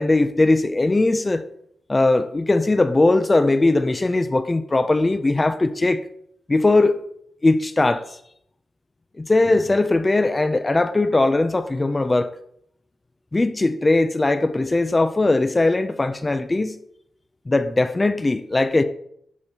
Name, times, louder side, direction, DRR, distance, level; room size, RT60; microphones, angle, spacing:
voice 1, 0.0-1.4 1.9-6.0 6.5-7.0 7.4-8.2 9.2-12.3 13.3-16.8 17.5-18.8, left 2 dB, 20° left, 0.4 m, -19 dB
11.0 x 5.1 x 2.8 m
wide cardioid pair, 135°, 0 cm